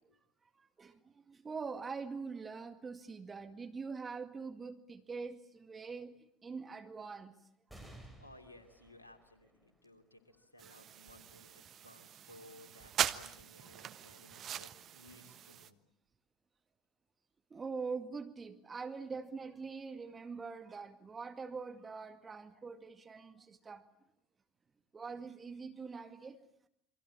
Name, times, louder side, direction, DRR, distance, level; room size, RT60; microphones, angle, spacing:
voice 1, 0.5-7.3 10.6-10.8 17.5-23.8 24.9-26.4, right 5 dB, 20° right, 8 dB, 2.1 m, -44 dB
sound 1, 7.7-14.6 15.2-15.3 16.4-17.0, right 1 dB, ahead, 7.4 m, -60 dB
voice 2, 8.2-15.8, left 1 dB, 85° left, 8 dB, 2.8 m, -59 dB
sound 2, 10.6-15.7, right 10 dB, 40° right, 1.3 m, -41 dB
29.0 x 24.0 x 8.7 m, 0.74 s
figure-of-eight pair, 70°, 0 cm